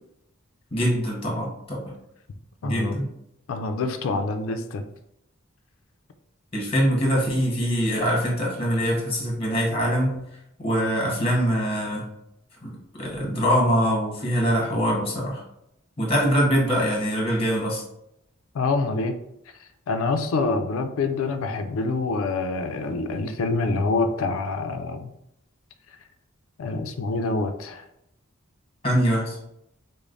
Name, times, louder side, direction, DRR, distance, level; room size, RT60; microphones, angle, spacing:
voice 1, 0.7-1.8 2.6-3.1 6.5-10.2 10.6-12.0 12.6-12.7 13.0-15.4 16.0-17.8 28.8-29.4, equal, 30° left, -2 dB, 1.0 m, -23 dB
voice 2, 2.6-3.0 3.5-4.8 18.5-19.2 19.9-25.1 26.6-27.8, left 3 dB, 80° left, 7 dB, 0.4 m, -26 dB
5.0 x 2.0 x 2.5 m, 0.80 s
head